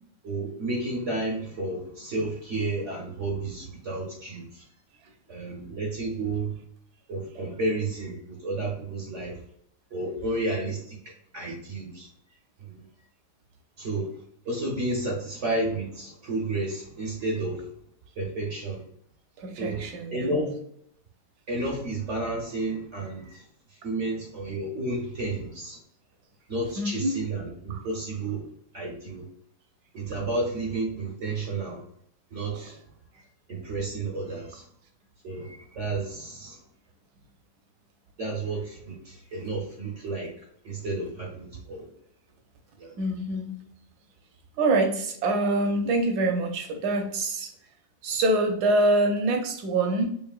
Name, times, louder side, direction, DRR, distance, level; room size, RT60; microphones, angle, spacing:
voice 1, 0.2-4.7 5.3-6.6 7.1-9.4 9.9-11.0 11.3-12.1 12.6-12.8 13.8-14.1 14.4-17.6 18.2-18.8 19.6-20.6 21.5-25.8 26.5-28.5 28.7-29.2 29.9-31.8 32.3-32.7 33.5-34.6 35.2-36.6 38.2-40.3 40.6-41.9 42.8-42.9, right 2 dB, 55° right, -1 dB, 0.9 m, -31 dB
voice 2, 19.4-20.3 26.8-27.1 27.7-27.8 32.5-32.7 43.0-43.5 44.6-47.5 48.0-50.1, right 2 dB, 70° right, 4 dB, 1.3 m, -25 dB
4.7 x 2.8 x 2.4 m, 0.69 s
omnidirectional pair, 1.9 m